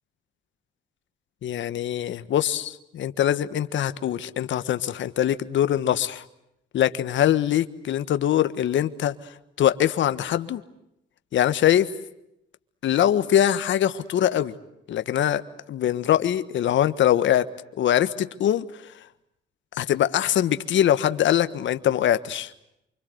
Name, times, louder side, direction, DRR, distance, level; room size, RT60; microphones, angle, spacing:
voice 1, 1.4-6.2 6.7-9.1 9.6-10.6 11.3-11.9 12.8-14.5 14.9-15.4 15.7-17.5 17.8-18.6 19.8-22.5, left 11 dB, 70° left, 12 dB, 1.5 m, -22 dB
28.5 x 25.5 x 8.1 m, 0.81 s
cardioid pair, 90°, 20 cm